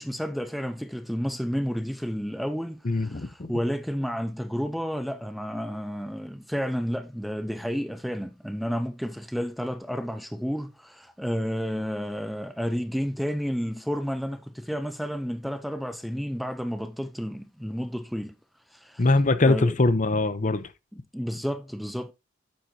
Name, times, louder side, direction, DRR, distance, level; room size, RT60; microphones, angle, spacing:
voice 1, 0.0-18.3 18.7-19.0 19.5-19.7 20.9-22.1, equal, ahead, 0.5 m, -31 dB
voice 2, 2.8-3.5 19.0-20.7, left 2 dB, 40° left, 0.8 m, -22 dB
8.9 x 7.8 x 2.8 m
head